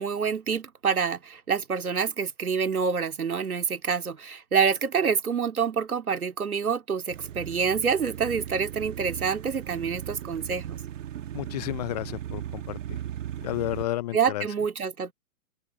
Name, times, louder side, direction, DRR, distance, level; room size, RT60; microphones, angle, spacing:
voice 1, 0.0-10.8 14.1-15.1, right 6 dB, 85° right, 2.3 m, -27 dB
sound 1, 7.1-13.9, right 11 dB, 60° right, 1.8 m, -37 dB
voice 2, 11.3-13.0 13.4-14.5, left 15 dB, 30° left, 0.5 m, -32 dB
open air
hypercardioid pair, 125°, 42 cm